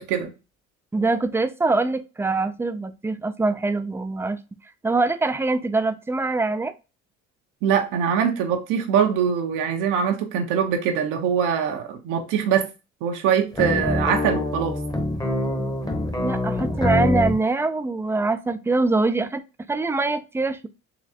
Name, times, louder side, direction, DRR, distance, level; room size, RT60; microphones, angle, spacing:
voice 1, 0.9-4.4 4.8-6.7 16.2-19.4 19.7-20.7, right 3 dB, 10° right, 0.5 m, -23 dB
voice 2, 7.6-12.7 13.0-14.8, right 7 dB, 80° right, 1.0 m, -23 dB
sound 1, 13.5-17.4, left 1 dB, 10° left, 1.0 m, -24 dB
4.1 x 3.1 x 2.8 m
supercardioid pair, 75°, 31 cm